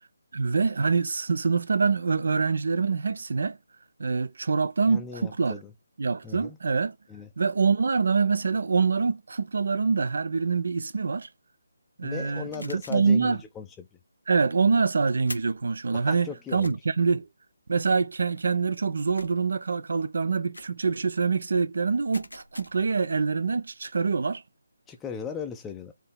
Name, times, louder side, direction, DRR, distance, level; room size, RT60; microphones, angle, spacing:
voice 1, 0.3-3.6 4.0-5.6 6.0-7.0 7.4-11.3 12.0-13.4 14.3-17.3 17.7-24.4, right 4 dB, 60° right, 0.5 m, -25 dB
voice 2, 4.9-5.7 6.2-6.6 7.1-7.3 12.0-13.9 15.9-16.8 24.9-25.9, left 6 dB, 10° left, 0.5 m, -38 dB
sound 1, 12.5-13.1 15.3-15.7 16.6-16.7 19.1-19.5 20.5-20.8 22.1-22.9, left 1 dB, 80° left, 0.7 m, -43 dB
4.4 x 2.8 x 3.4 m
figure-of-eight pair, 150°, 0 cm